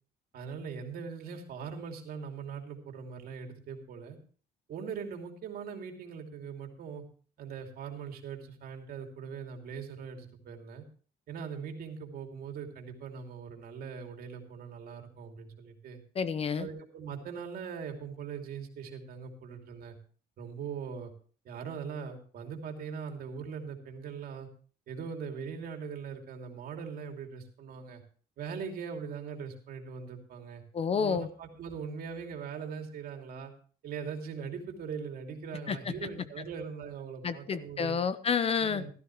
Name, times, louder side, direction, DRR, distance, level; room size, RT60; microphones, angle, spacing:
voice 1, 0.3-4.2 4.7-7.0 7.4-10.8 11.3-16.0 16.5-20.0 20.4-21.1 21.4-24.5 24.9-28.0 28.4-30.6 31.0-33.5 33.8-38.0 38.6-38.9, right 6 dB, 60° right, 4 dB, 2.7 m, -41 dB
voice 2, 16.2-16.7 30.7-31.3 35.7-35.8 37.2-38.8, left 6 dB, 35° left, 14 dB, 0.8 m, -29 dB
16.0 x 13.0 x 3.1 m, 0.41 s
cardioid pair, 110°, 17 cm